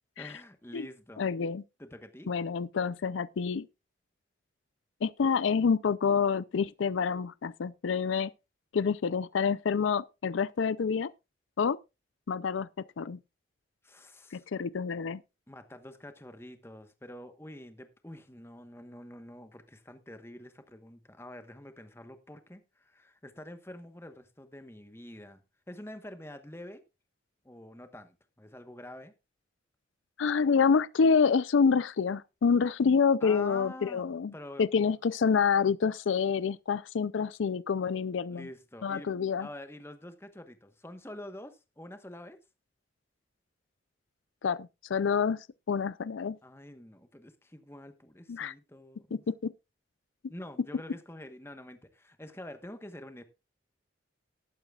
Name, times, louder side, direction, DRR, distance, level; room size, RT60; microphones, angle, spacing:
voice 1, 0.2-1.3 1.8-2.3 13.8-14.5 15.5-26.8 27.4-29.1 33.2-34.0 34.3-34.7 38.3-39.1 39.4-42.4 46.4-49.2 50.3-53.2, left 1 dB, 15° left, 1.1 m, -47 dB
voice 2, 1.2-1.6 2.3-3.7 5.0-8.3 8.7-11.1 11.6-11.8 12.3-12.7 13.0-13.2 14.3-15.2 30.2-34.3 34.6-38.5 38.8-39.5 44.4-46.4 48.3-48.5 49.1-49.5, left 6 dB, 85° left, 0.4 m, -27 dB
18.5 x 8.9 x 2.4 m
head